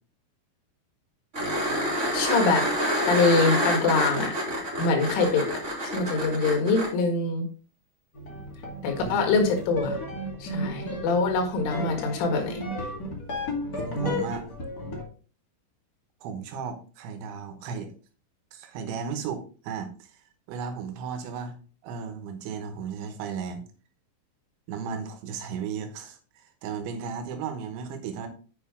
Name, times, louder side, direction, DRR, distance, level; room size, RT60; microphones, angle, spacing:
sound 1, 1.3-6.9 9.6-9.7, equal, 20° right, 2.9 m, -27 dB
voice 1, 2.1-2.7 3.1-4.3 4.8-5.4 5.8-7.5 8.8-10.0 10.4-12.6, left 4 dB, 80° left, 4 dB, 4.3 m, -24 dB
sound 2, 8.1-15.0, equal, 50° left, 1.1 m, -34 dB
voice 2, 13.7-14.5 16.2-17.9 18.5-20.1 20.5-21.6 21.8-23.6 24.7-28.3, right 6 dB, 75° right, 7 dB, 3.3 m, -35 dB
8.0 x 6.6 x 3.7 m, 0.38 s
omnidirectional pair, 5.5 m